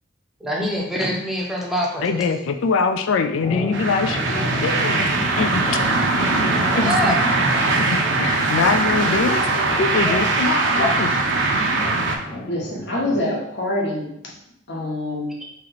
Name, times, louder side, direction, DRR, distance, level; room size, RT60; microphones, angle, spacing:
voice 1, 0.4-2.3 6.7-7.2 10.1-10.2, equal, ahead, -3 dB, 0.6 m, -25 dB
voice 2, 2.0-5.9 6.4-7.2 7.9-11.1, left 4 dB, 85° left, 7 dB, 0.4 m, -23 dB
sound 1, 3.4-13.2, left 1 dB, 25° left, 1.0 m, -31 dB
sound 2, 3.7-12.2, right 3 dB, 65° right, 0.5 m, -21 dB
voice 3, 12.4-14.1 14.7-15.4, left 1 dB, 60° left, -3 dB, 1.0 m, -25 dB
3.1 x 2.8 x 4.0 m, 0.76 s
head